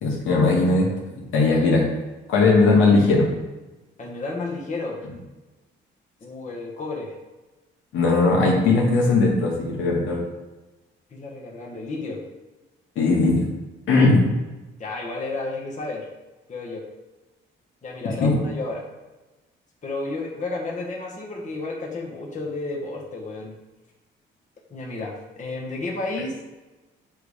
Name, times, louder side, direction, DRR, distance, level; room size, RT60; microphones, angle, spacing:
voice 1, 0.0-1.9 2.3-3.3 7.9-10.2 13.0-13.5 13.9-14.3 18.2-18.3, left 3 dB, 80° left, -3 dB, 1.9 m, -19 dB
voice 2, 4.0-5.0 6.2-7.1 11.1-12.2 14.8-16.1 16.5-16.9 17.8-18.8 19.8-23.5 24.7-26.3, left 2 dB, 40° left, -2 dB, 1.4 m, -31 dB
7.8 x 3.4 x 5.0 m, 1.1 s
cardioid pair, 90°, 20 cm